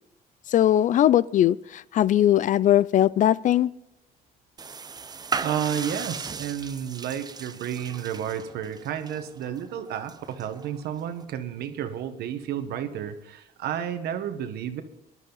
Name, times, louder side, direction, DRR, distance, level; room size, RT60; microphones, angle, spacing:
voice 1, 0.5-3.7, left 12 dB, 50° left, 21 dB, 0.4 m, -20 dB
sound 1, 4.6-11.2, right 5 dB, 25° right, 0.6 m, -37 dB
voice 2, 5.4-14.8, right 9 dB, 70° right, 9 dB, 1.3 m, -31 dB
20.0 x 11.0 x 4.0 m, 0.84 s
cardioid pair, 110°, 17 cm